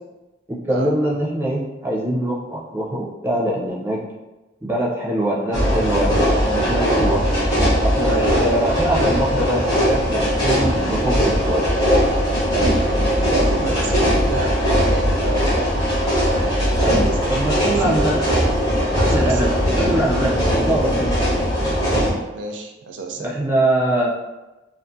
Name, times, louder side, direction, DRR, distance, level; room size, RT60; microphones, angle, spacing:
voice 1, 0.5-4.0 4.6-7.3 7.8-11.7 16.8-17.0 17.3-18.2 18.9-21.2 23.2-24.1, right 1 dB, 10° right, -4 dB, 0.5 m, -23 dB
sound 1, 5.5-22.1, equal, 20° left, 0.9 m, -19 dB
voice 2, 8.0-8.6 12.5-18.5 18.9-19.6 21.2-21.3 22.1-23.4, right 2 dB, 80° right, 2 dB, 0.4 m, -30 dB
2.4 x 2.4 x 2.6 m, 1.1 s
head